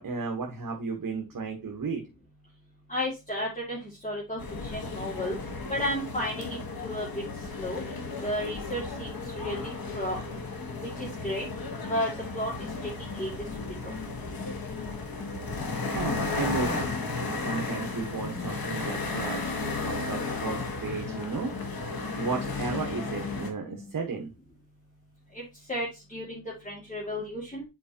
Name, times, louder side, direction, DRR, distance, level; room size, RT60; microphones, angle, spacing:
voice 1, 0.0-2.1 15.9-21.5 22.1-24.3, right 4 dB, 65° right, 2 dB, 1.2 m, -34 dB
voice 2, 2.9-4.4 4.7-5.4 5.7-7.1 7.6-7.8 8.2-10.2 10.8-11.4 11.9-12.5 12.8-13.3 25.3-25.4 25.7-27.6, left 1 dB, 20° left, -5 dB, 2.2 m, -33 dB
sound 1, 4.4-23.5, left 3 dB, 80° left, 1.5 m, -34 dB
sound 2, 11.7-16.9 17.4-19.0 20.1-24.0, left 4 dB, 60° left, 3.7 m, -43 dB
8.1 x 4.4 x 2.8 m, 0.25 s
wide cardioid pair, 110°, 35 cm